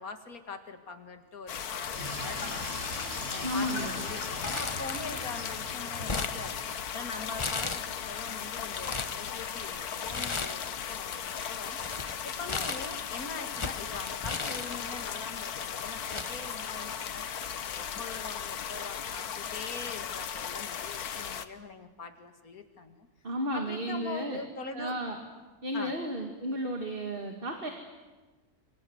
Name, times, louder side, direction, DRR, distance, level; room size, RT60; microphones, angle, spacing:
voice 1, 0.0-2.6 3.3-6.6 6.9-11.8 12.2-23.1 23.5-25.0 25.7-25.9, left 4 dB, 70° left, 7 dB, 2.5 m, -43 dB
sound 1, 1.5-21.5, left 8 dB, 85° left, 1.6 m, -37 dB
Sink (filling or washing), 1.8-9.6, left 1 dB, 45° left, 6.7 m, -42 dB
voice 2, 3.4-4.0 23.2-24.4 24.7-25.2 25.6-27.7, equal, 35° right, 3 dB, 2.2 m, -33 dB
Crumpling crinkling, 4.4-5.4 5.7-6.9 7.4-8.2 8.6-9.2 10.1-10.8 11.1-15.2 15.8-15.9 16.1-17.2 17.5-17.6 18.5-18.8, left 4 dB, 25° left, 0.8 m, -36 dB
27.5 x 24.5 x 8.0 m, 1.3 s
omnidirectional pair, 1.6 m